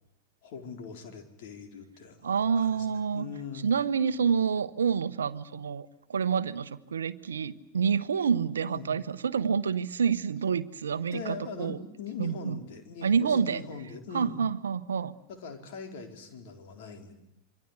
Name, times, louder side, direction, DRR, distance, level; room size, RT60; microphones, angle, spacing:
voice 1, 0.4-3.7 8.7-8.9 11.1-14.4 15.3-17.1, left 4 dB, 50° left, 5 dB, 4.3 m, -41 dB
voice 2, 2.2-3.3 3.6-11.8 12.2-12.6 13.0-13.6 14.1-15.1, right 6 dB, 70° right, 15 dB, 1.0 m, -28 dB
27.5 x 24.0 x 8.3 m, 0.80 s
figure-of-eight pair, 90°, 0 cm